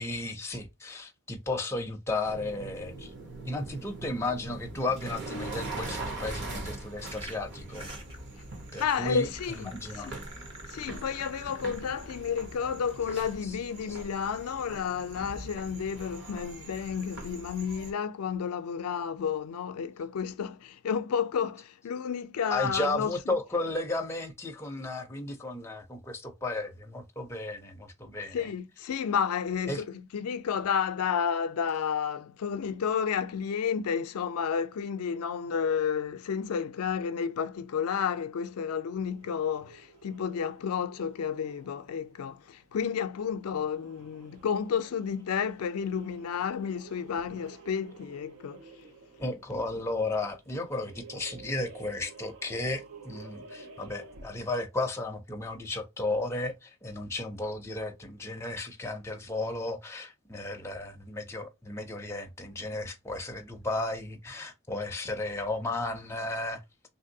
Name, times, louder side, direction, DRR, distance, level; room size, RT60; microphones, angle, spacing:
voice 1, 0.0-3.1 3.4-7.9 8.7-9.3 9.6-10.1 11.5-11.6 13.4-13.6 22.5-28.5 29.7-29.8 49.2-66.6, left 2 dB, 10° left, 0.4 m, -34 dB
sound 1, 2.2-17.9, right 2 dB, 50° right, 0.9 m, -42 dB
sound 2, 7.1-13.2, right 1 dB, 20° right, 0.7 m, -49 dB
voice 2, 8.8-10.1 10.7-23.1 28.3-48.7, left 7 dB, 85° left, 0.4 m, -31 dB
sound 3, 39.0-54.7, right 4 dB, 85° right, 0.6 m, -52 dB
3.2 x 2.6 x 2.7 m
head